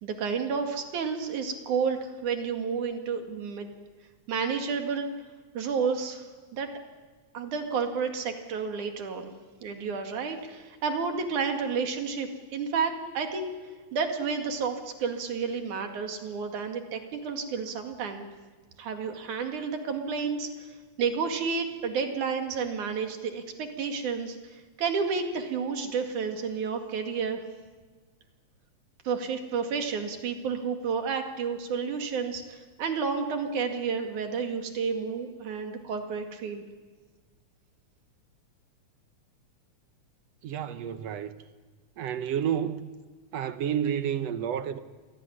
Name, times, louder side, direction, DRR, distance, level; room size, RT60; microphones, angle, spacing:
voice 1, 0.0-3.7 4.3-5.1 5.5-6.3 6.5-6.7 7.3-9.3 9.6-13.5 13.9-18.3 18.8-20.5 21.0-27.4 29.1-36.6, right 5 dB, 85° right, 3.7 m, -31 dB
voice 2, 40.4-41.4 42.0-42.9 43.3-44.8, right 9 dB, 70° right, 1.9 m, -30 dB
27.5 x 17.5 x 10.0 m
omnidirectional pair, 3.4 m